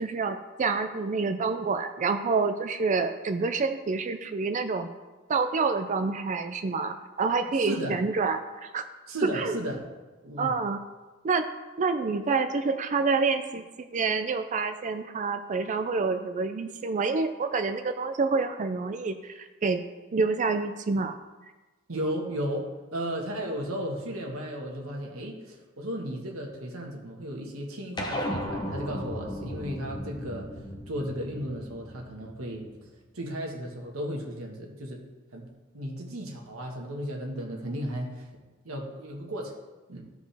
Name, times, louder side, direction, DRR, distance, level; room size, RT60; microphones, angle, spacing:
voice 1, 0.0-4.9 5.3-8.9 9.2-9.6 10.4-10.8 11.2-11.4 11.8-19.8 20.1-21.2, right 4 dB, 35° right, 8 dB, 0.4 m, -27 dB
voice 2, 7.5-8.1 9.1-9.8 10.2-10.5 21.9-30.5 30.9-32.7 33.1-35.0 35.3-38.3 38.6-39.6 39.9-40.0, equal, 75° right, 0 dB, 1.5 m, -35 dB
sound 1, 28.0-32.7, equal, 20° left, 0.9 m, -35 dB
14.5 x 5.1 x 3.4 m, 1.2 s
head